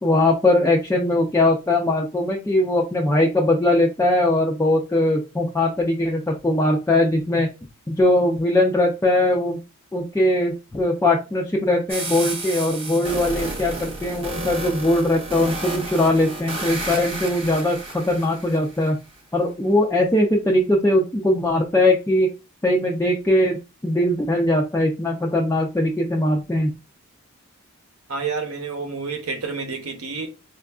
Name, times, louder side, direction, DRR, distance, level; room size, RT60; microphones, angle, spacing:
voice 1, 0.0-7.5 7.9-9.6 9.9-19.0 19.3-22.3 22.6-26.7, left 1 dB, 10° left, 0.3 m, -20 dB
sound 1, 11.9-18.9, right 2 dB, 25° right, 0.6 m, -32 dB
voice 2, 28.1-30.3, right 4 dB, 75° right, 0.8 m, -29 dB
4.4 x 2.4 x 2.3 m
head